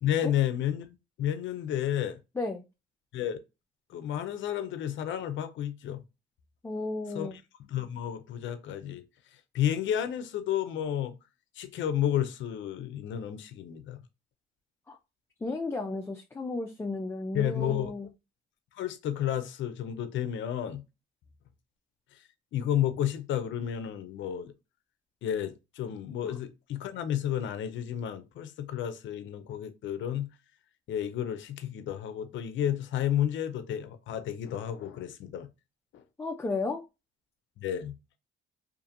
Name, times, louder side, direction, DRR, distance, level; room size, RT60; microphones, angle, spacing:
voice 1, 0.0-2.2 3.1-3.4 3.9-6.0 7.1-7.3 7.7-9.0 9.5-11.2 11.6-14.0 17.3-17.9 18.8-20.8 22.5-24.5 25.2-30.3 30.9-35.5 35.9-36.0 37.6-37.9, left 10 dB, 70° left, 0.5 m, -31 dB
voice 2, 6.6-7.3 14.9-15.0 15.4-18.1 26.2-26.3 36.2-36.8, left 3 dB, 15° left, 0.3 m, -33 dB
2.7 x 2.5 x 2.4 m
cardioid pair, 90°, 20 cm